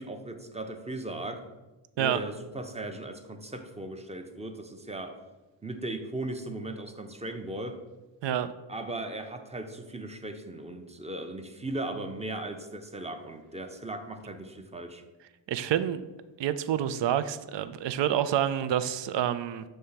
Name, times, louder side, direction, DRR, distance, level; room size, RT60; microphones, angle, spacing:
voice 1, 0.0-1.4 2.0-5.2 5.6-7.8 8.7-15.0, right 2 dB, 15° right, 6 dB, 0.6 m, -37 dB
voice 2, 15.5-16.0 16.4-19.6, right 10 dB, 65° right, 12 dB, 0.5 m, -28 dB
6.4 x 3.4 x 5.7 m, 1.1 s
cardioid pair, 90°, 47 cm